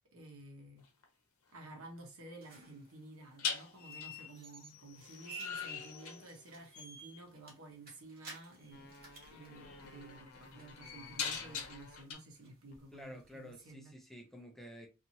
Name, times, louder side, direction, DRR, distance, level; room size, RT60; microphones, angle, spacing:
voice 1, 0.1-0.9 1.5-8.9 9.3-13.9, right 2 dB, 70° right, 1.0 m, -53 dB
sound 1, 0.8-1.0 3.4-6.5 6.7-7.2 8.6-8.8 9.3-12.1, left 6 dB, 85° left, 0.8 m, -42 dB
sound 2, 2.4-13.6, right 2 dB, 45° right, 1.3 m, -61 dB
sound 3, 8.7-12.0 12.7-13.7, left 3 dB, 50° left, 0.6 m, -57 dB
voice 2, 12.9-14.9, equal, ahead, 0.5 m, -50 dB
2.8 x 2.6 x 2.7 m
head